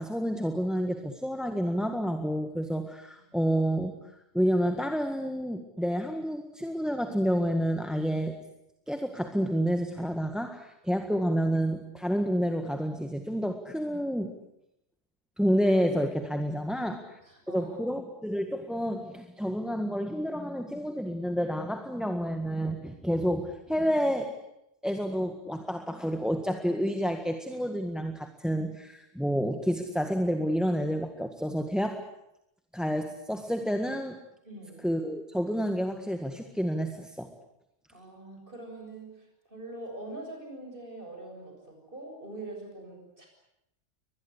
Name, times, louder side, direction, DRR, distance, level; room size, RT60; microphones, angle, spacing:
voice 1, 0.0-3.9 4.3-8.4 8.9-14.3 15.4-17.0 17.5-24.3 24.8-32.0 32.7-34.2 34.8-37.3, equal, ahead, 6 dB, 1.6 m, -29 dB
voice 2, 16.7-18.0 34.4-34.9 37.9-43.3, right 2 dB, 45° right, 2 dB, 7.6 m, -44 dB
24.0 x 21.0 x 9.9 m, 0.82 s
omnidirectional pair, 1.3 m